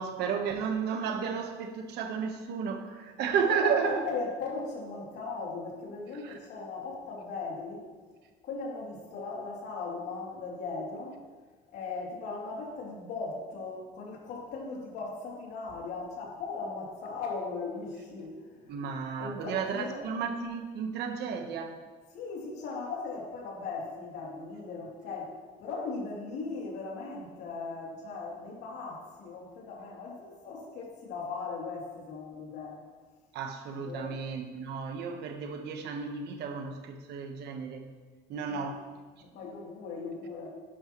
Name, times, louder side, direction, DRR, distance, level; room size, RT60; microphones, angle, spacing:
voice 1, 0.0-4.0 6.2-6.4 18.7-21.8 33.3-37.9 38.3-38.8, right 6 dB, 80° right, 5 dB, 1.3 m, -33 dB
voice 2, 3.4-7.8 8.4-11.2 11.7-18.8 19.2-20.0 22.1-32.8 33.8-34.1 38.5-38.7 39.2-40.5, left 4 dB, 80° left, -3 dB, 3.0 m, -38 dB
11.0 x 11.0 x 3.1 m, 1.4 s
cardioid pair, 110°, 17 cm